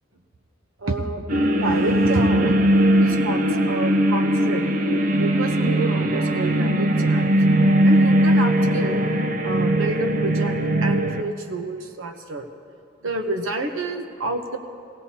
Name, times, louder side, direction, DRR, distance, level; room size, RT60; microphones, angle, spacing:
voice 1, 0.8-2.5 3.0-7.3 7.8-9.0 9.4-12.5 13.0-14.6, right 2 dB, 85° right, 5 dB, 0.9 m, -29 dB
sound 1, 1.3-11.2, right 1 dB, 45° right, 0.5 m, -19 dB
18.5 x 17.5 x 2.8 m, 2.4 s
head